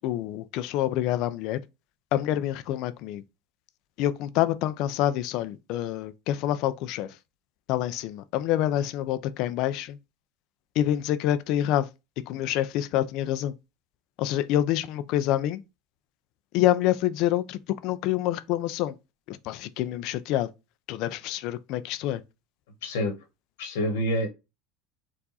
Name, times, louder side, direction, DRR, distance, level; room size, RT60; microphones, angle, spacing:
voice 1, 0.0-1.6 2.1-3.2 4.0-7.2 7.7-10.0 10.8-11.9 12.3-13.5 14.2-15.6 16.5-19.0 19.3-20.5 20.9-22.2, left 12 dB, 60° left, 0.5 m, -27 dB
voice 2, 22.8-23.1 23.6-24.3, equal, 85° left, 1.5 m, -27 dB
4.6 x 2.6 x 4.0 m
supercardioid pair, 115°, 0 cm